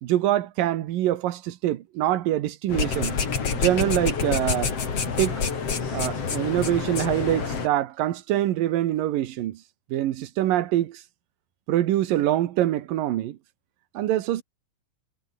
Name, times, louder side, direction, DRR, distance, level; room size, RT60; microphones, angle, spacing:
voice 1, 0.0-3.2 3.5-4.7 5.2-5.4 5.9-9.6 9.9-11.0 11.7-13.4 13.9-14.4, right 13 dB, 75° right, 2.9 m, -24 dB
sound 1, 2.7-7.7, left 5 dB, 45° left, 4.1 m, -27 dB
omnidirectional pair, 4.0 m